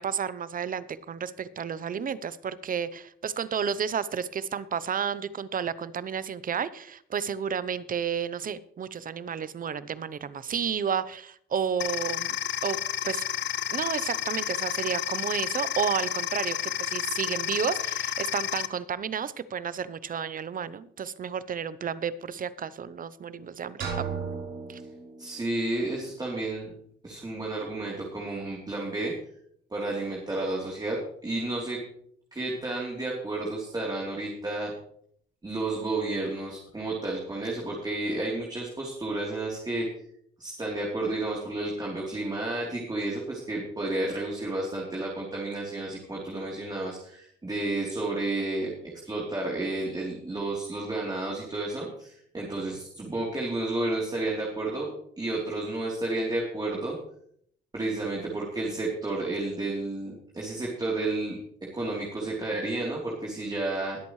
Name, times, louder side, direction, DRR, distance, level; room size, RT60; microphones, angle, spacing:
voice 1, 0.0-12.4 12.6-12.8 13.0-13.2 13.7-24.0 24.7-24.8, right 7 dB, 45° right, 16 dB, 0.8 m, -31 dB
sound 1, 11.8-18.7, left 10 dB, 65° left, 0.7 m, -31 dB
sound 2, 23.8-25.7, right 6 dB, 75° right, 4.8 m, -35 dB
voice 2, 25.2-26.7 27.0-29.1 29.7-31.8 32.3-34.7 35.4-39.9 40.4-48.7 49.0-54.9 55.2-57.0 57.7-61.4 61.7-64.0, right 2 dB, 20° right, -3 dB, 3.4 m, -31 dB
21.5 x 8.4 x 3.2 m, 0.66 s
cardioid pair, 90°, 20 cm